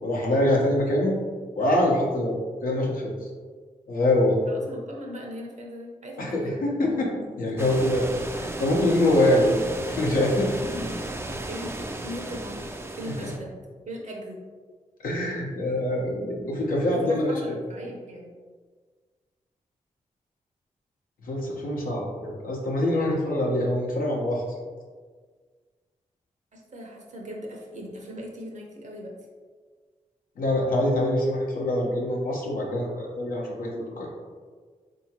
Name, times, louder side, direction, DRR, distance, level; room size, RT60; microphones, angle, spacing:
voice 1, 0.0-1.1 1.6-3.1 3.9-4.4 6.2-9.6 9.9-10.9 13.2-13.3 15.0-17.3 21.2-24.4 30.4-34.1, left 1 dB, 80° left, -3 dB, 0.8 m, -24 dB
voice 2, 4.5-6.6 7.7-7.8 11.3-14.4 16.9-18.3 26.5-29.1, equal, 55° right, -1 dB, 0.8 m, -39 dB
sound 1, 7.6-13.4, right 1 dB, 20° right, 0.4 m, -35 dB
3.5 x 2.8 x 2.8 m, 1.5 s
cardioid pair, 45°, 14 cm